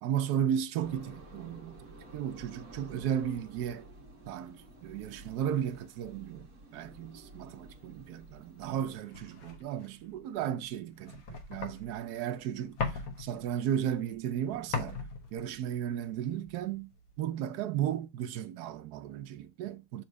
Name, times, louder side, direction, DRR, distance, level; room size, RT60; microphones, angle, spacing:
voice 1, 0.0-1.7 2.1-3.9 4.3-6.5 6.7-15.0 15.3-16.9 17.2-20.0, right 10 dB, 85° right, 0.8 m, -34 dB
sound 1, 0.8-9.0, right 2 dB, 45° right, 1.5 m, -52 dB
sound 2, 8.2-17.2, left 5 dB, 50° left, 1.2 m, -41 dB
7.5 x 3.0 x 4.6 m
omnidirectional pair, 2.4 m